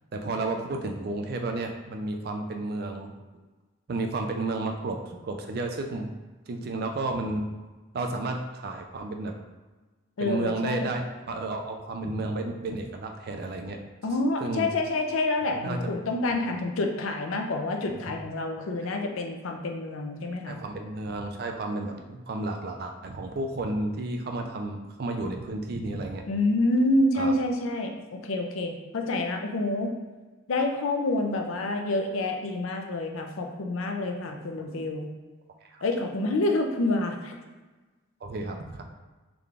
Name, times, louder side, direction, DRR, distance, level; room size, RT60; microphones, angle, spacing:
voice 1, 0.1-3.1 3.9-6.1 6.5-7.5 7.9-9.3 10.2-11.0 11.3-13.8 14.4-14.7 15.6-15.8 18.0-18.1 20.5-26.3 27.1-27.3 35.6-35.8 38.2-38.8, right 2 dB, 45° right, 3 dB, 0.4 m, -32 dB
voice 2, 10.2-10.9 14.0-20.6 26.3-27.9 28.2-29.9 30.5-35.1 35.8-37.3, left 2 dB, 75° left, 3 dB, 0.5 m, -27 dB
3.7 x 2.4 x 3.3 m, 1.2 s
head